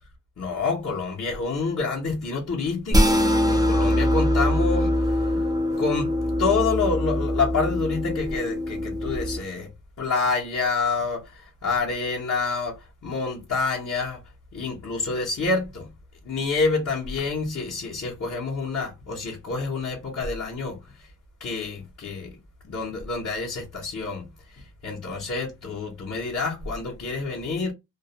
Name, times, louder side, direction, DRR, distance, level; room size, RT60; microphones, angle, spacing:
voice 1, 0.4-9.7 10.0-14.2 14.5-15.9 16.2-21.1 21.4-22.4 22.6-27.7, left 4 dB, 45° left, 0.7 m, -28 dB
sound 1, 2.9-9.4, left 1 dB, 10° right, 0.4 m, -23 dB
2.2 x 2.0 x 2.7 m
wide cardioid pair, 150°, 35 cm